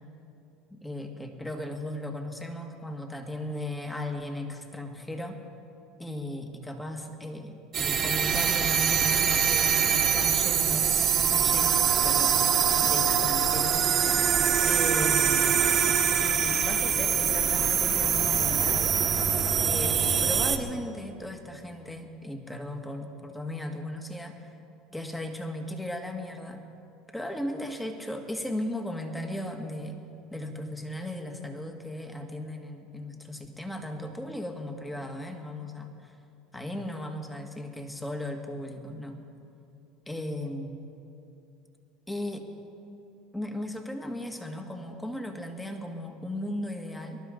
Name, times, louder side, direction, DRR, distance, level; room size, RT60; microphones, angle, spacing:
voice 1, 0.7-5.4 6.0-10.9 11.3-12.4 12.8-13.8 14.6-15.6 16.2-19.0 19.6-24.5 24.9-26.6 27.1-30.0 30.3-36.2 36.5-39.2 40.1-40.8 42.1-42.5 43.3-47.2, left 1 dB, 10° left, 4 dB, 2.0 m, -36 dB
sound 1, 7.7-20.6, right 8 dB, 40° right, 1.4 m, -24 dB
25.0 x 12.5 x 3.9 m, 2.7 s
hypercardioid pair, 80°, 0 cm